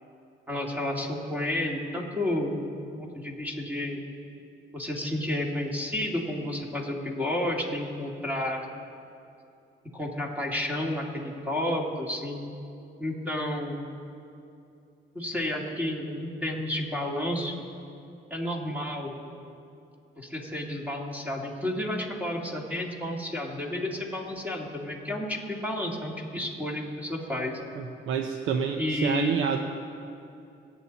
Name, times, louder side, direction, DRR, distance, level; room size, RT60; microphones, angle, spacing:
voice 1, 0.5-4.0 4.7-8.6 9.9-12.4 13.0-13.8 15.1-17.6 18.3-19.2 20.2-27.5 28.8-29.4, left 1 dB, 10° right, -1 dB, 2.4 m, -31 dB
voice 2, 27.8-29.6, right 7 dB, 90° right, 5 dB, 0.8 m, -28 dB
25.0 x 8.9 x 4.1 m, 2.6 s
cardioid pair, 90°, 20 cm